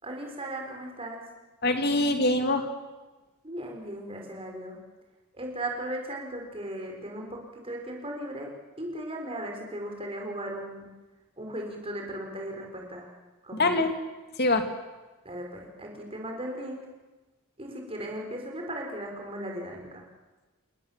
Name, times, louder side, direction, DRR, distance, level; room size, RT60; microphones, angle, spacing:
voice 1, 0.0-1.2 3.4-4.8 5.3-8.5 8.8-10.9 11.4-13.1 13.4-13.7 15.3-16.9 17.6-20.0, right 1 dB, 25° right, 1 dB, 5.3 m, -37 dB
voice 2, 1.6-2.7 13.5-13.9 14.4-14.6, left 2 dB, 45° left, 6 dB, 2.6 m, -24 dB
29.0 x 19.5 x 7.6 m, 1.2 s
head